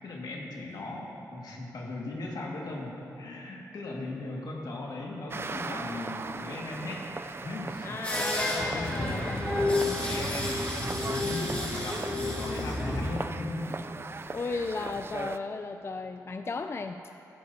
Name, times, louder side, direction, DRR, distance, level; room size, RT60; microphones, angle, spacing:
voice 1, 0.0-7.0 7.4-8.0 8.5-9.2 9.5-13.9, left 2 dB, 80° left, -2 dB, 1.9 m, -38 dB
sound 1, 5.3-15.4, right 3 dB, 35° right, 0.4 m, -39 dB
voice 2, 7.8-10.0 14.3-17.0, left 4 dB, 40° left, 7 dB, 0.4 m, -35 dB
sound 2, 8.0-13.0, left 2 dB, 20° left, 3.1 m, -30 dB
15.5 x 13.0 x 2.8 m, 3.0 s
cardioid pair, 70°, 7 cm